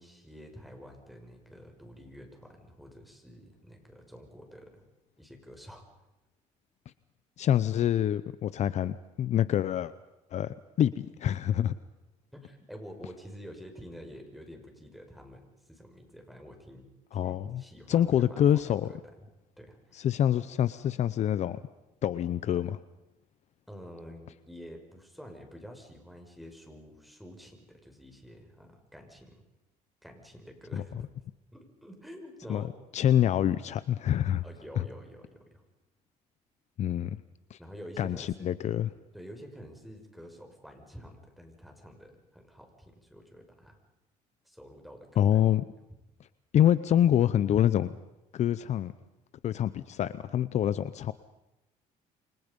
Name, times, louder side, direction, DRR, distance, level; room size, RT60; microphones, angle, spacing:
voice 1, 0.0-4.8 5.2-5.8 12.3-16.8 17.2-19.0 19.6-19.8 23.7-29.4 30.0-31.1 31.5-32.7 34.4-35.6 37.6-38.5 39.1-43.8 44.4-45.4, equal, ahead, 3 dB, 5.9 m, -48 dB
voice 2, 7.4-9.9 10.3-11.7 17.1-17.6 17.9-18.9 19.9-21.6 22.0-22.8 30.7-30.8 32.5-32.6 32.9-34.4 34.8-34.9 36.8-37.2 37.5-37.6 38.0-38.9 45.2-45.6 46.5-48.0 48.3-48.9 49.4-51.1, left 10 dB, 55° left, 15 dB, 0.8 m, -26 dB
29.0 x 25.0 x 5.4 m, 0.95 s
cardioid pair, 115°, 14 cm